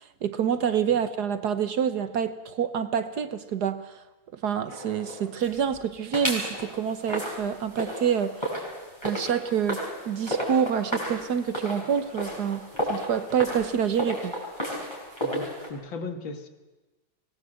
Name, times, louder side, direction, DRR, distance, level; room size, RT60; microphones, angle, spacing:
voice 1, 0.0-4.0 4.3-8.4 9.0-14.3, right 8 dB, 60° right, 12 dB, 1.4 m, -27 dB
sound 1, 4.7-5.8 6.1-15.7, equal, 10° left, 6.1 m, -33 dB
voice 2, 15.2-16.5, left 3 dB, 70° left, 8 dB, 2.5 m, -37 dB
24.0 x 19.5 x 7.7 m, 1.1 s
omnidirectional pair, 2.2 m